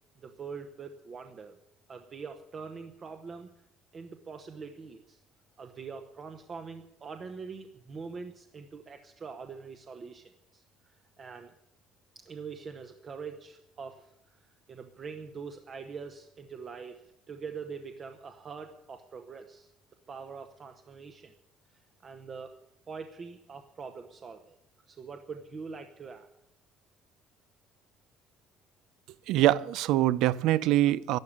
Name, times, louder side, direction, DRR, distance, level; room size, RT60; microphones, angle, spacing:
voice 1, 0.2-1.6 1.9-3.5 3.9-5.2 5.6-11.5 12.1-19.7 20.1-21.3 21.7-22.5 22.9-24.6 24.9-26.3, right 5 dB, 30° right, 0.9 m, -44 dB
voice 2, 29.3-31.2, right 14 dB, 65° right, 0.5 m, -24 dB
12.0 x 12.0 x 8.6 m
cardioid pair, 160°, 0 cm